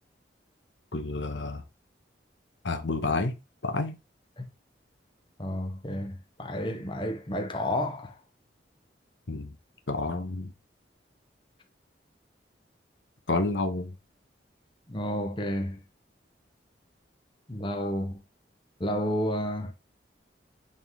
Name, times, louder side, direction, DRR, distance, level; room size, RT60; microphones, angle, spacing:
voice 1, 0.9-1.6 2.6-3.4 3.6-4.0 9.3-9.5 9.9-10.5 13.3-13.9, left 2 dB, 80° left, 1.1 m, -29 dB
voice 2, 5.4-8.2 14.9-15.8 17.5-18.2 18.8-19.7, equal, 25° left, 1.0 m, -31 dB
8.7 x 3.7 x 3.7 m
head